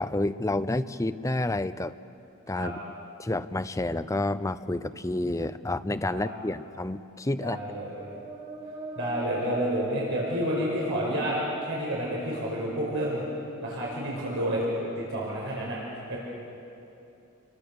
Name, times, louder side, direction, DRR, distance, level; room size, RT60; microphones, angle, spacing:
voice 1, 0.0-1.9 2.5-2.8 3.2-7.6, left 2 dB, 15° left, 12 dB, 0.5 m, -29 dB
voice 2, 7.4-7.9 9.0-11.4 11.6-13.2 13.6-14.7 15.0-15.8 16.1-16.2, right 1 dB, 60° right, -5 dB, 5.3 m, -30 dB
sound 1, 7.6-13.3, equal, 25° right, 2.4 m, -41 dB
29.0 x 22.5 x 6.9 m, 2.8 s
head